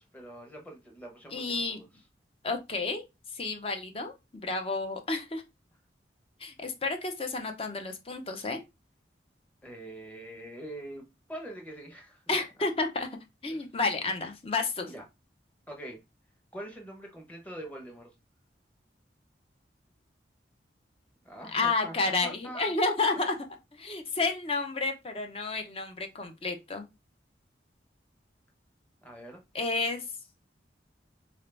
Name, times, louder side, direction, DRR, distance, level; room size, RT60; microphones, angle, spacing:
voice 1, 0.0-1.8 9.6-12.3 13.5-13.7 14.9-15.0 15.7-16.0 16.5-18.1 21.2-21.9 22.2-22.7 29.0-29.4, right 1 dB, 10° left, 1.0 m, -44 dB
voice 2, 1.3-1.8 2.4-3.0 3.3-5.4 6.4-8.6 12.3-13.1 13.4-14.9 21.5-23.3 23.7-26.9 29.5-30.0, left 3 dB, 35° left, 0.7 m, -31 dB
3.8 x 2.7 x 3.4 m
head